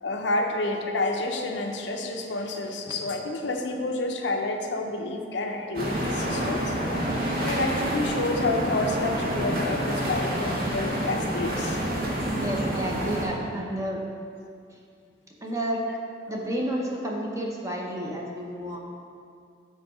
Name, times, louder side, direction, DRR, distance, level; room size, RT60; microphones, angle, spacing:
voice 1, 0.0-6.8 7.4-11.8, left 2 dB, 70° left, 3 dB, 0.6 m, -29 dB
sound 1, 5.7-13.2, equal, 50° right, 1.1 m, -28 dB
voice 2, 12.4-14.0 14.7-14.8 15.4-15.8 16.3-18.8, right 1 dB, 15° right, -2 dB, 0.7 m, -31 dB
7.2 x 3.8 x 4.9 m, 2.4 s
head